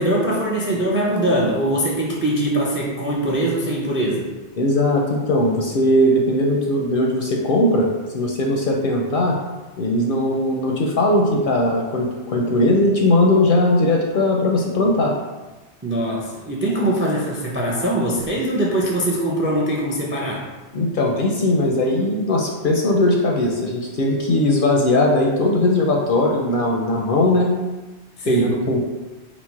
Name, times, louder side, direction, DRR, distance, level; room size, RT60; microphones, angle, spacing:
voice 1, 0.0-4.3 15.8-20.4 28.2-28.6, right 1 dB, 20° right, -3 dB, 0.3 m, -22 dB
voice 2, 4.6-7.9 8.1-9.4 9.8-15.1 20.7-27.5 28.3-28.8, left 1 dB, 60° left, 0 dB, 0.6 m, -19 dB
4.0 x 2.1 x 4.5 m, 1.2 s
omnidirectional pair, 1.2 m